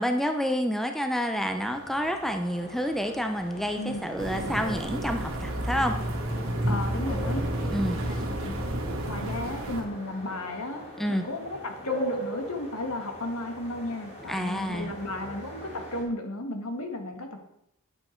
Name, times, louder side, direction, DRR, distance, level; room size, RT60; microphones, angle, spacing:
voice 1, 0.0-6.0 7.7-8.0 11.0-11.3 14.3-15.0, equal, ahead, 6 dB, 0.6 m, -28 dB
sound 1, 1.4-16.0, equal, 30° left, 2.5 m, -41 dB
sound 2, 4.2-9.8, right 1 dB, 60° right, 2.1 m, -30 dB
voice 2, 6.7-7.4 8.1-8.6 9.1-17.4, left 1 dB, 80° left, 5 dB, 1.7 m, -34 dB
9.8 x 8.2 x 4.5 m, 0.78 s
head